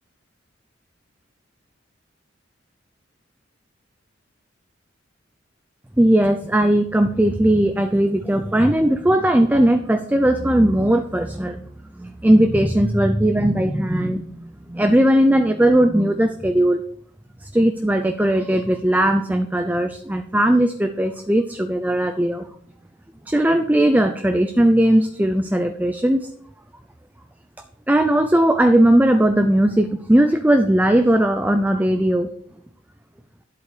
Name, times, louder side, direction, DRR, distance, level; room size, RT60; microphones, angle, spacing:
voice 1, 6.0-11.6 12.0-16.8 17.4-22.5 23.3-26.3 27.9-32.3, right 1 dB, 10° right, 7 dB, 0.5 m, -18 dB
11.0 x 8.1 x 4.9 m, 0.63 s
head